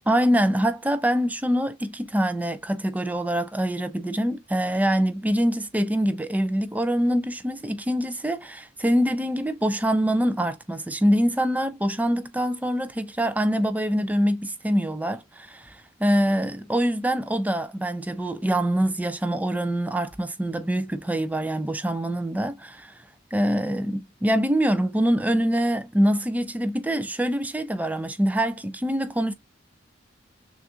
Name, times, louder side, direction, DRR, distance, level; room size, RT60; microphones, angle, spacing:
voice 1, 0.1-22.9 23.3-29.3, equal, 10° right, 0.5 m, -24 dB
6.4 x 2.5 x 2.2 m
head